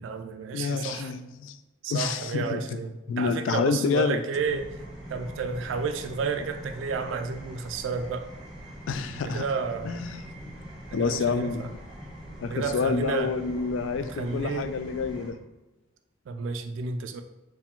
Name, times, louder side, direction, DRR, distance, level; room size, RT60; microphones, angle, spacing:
voice 1, 0.0-1.1 1.8-4.8 5.1-8.3 9.2-10.1 11.0-11.7 12.5-13.3 14.0-14.7 16.3-17.2, right 5 dB, 70° right, 7 dB, 0.3 m, -31 dB
voice 2, 0.5-1.6 1.9-2.6 3.1-4.2 8.9-9.4 9.8-10.2 10.9-11.7 12.4-15.4, left 5 dB, 70° left, 11 dB, 0.3 m, -28 dB
sound 1, 4.3-15.3, equal, 5° right, 0.9 m, -43 dB
4.7 x 2.2 x 3.6 m, 1.0 s
head